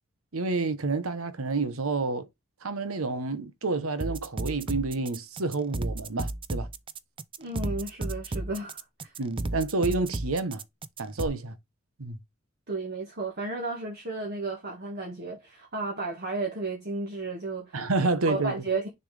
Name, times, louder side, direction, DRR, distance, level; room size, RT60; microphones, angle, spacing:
voice 1, 0.3-2.3 2.6-6.7 9.2-10.6 11.0-11.6 12.0-12.2 17.7-18.5, right 3 dB, 85° right, 1.0 m, -29 dB
sound 1, 4.0-11.3, right 2 dB, 25° right, 0.5 m, -33 dB
voice 2, 7.4-9.1 12.7-17.8 18.3-18.9, right 3 dB, 50° right, 1.7 m, -33 dB
6.8 x 4.3 x 3.3 m
head